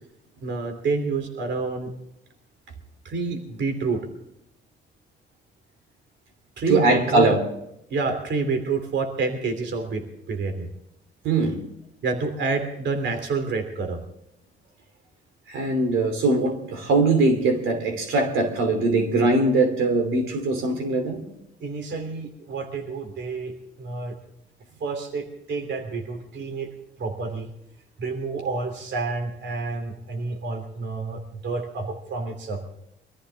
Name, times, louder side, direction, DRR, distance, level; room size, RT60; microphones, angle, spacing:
voice 1, 0.4-1.9 3.0-4.0 6.6-7.3 7.9-10.7 12.0-14.0 21.6-24.1 24.8-26.7 27.0-27.5 28.0-32.7, right 4 dB, 65° right, 6 dB, 3.0 m, -28 dB
voice 2, 6.7-7.4 11.2-11.6 15.5-21.2, right 2 dB, 85° right, 5 dB, 3.0 m, -21 dB
23.0 x 14.0 x 3.5 m, 0.79 s
cardioid pair, 90°, 20 cm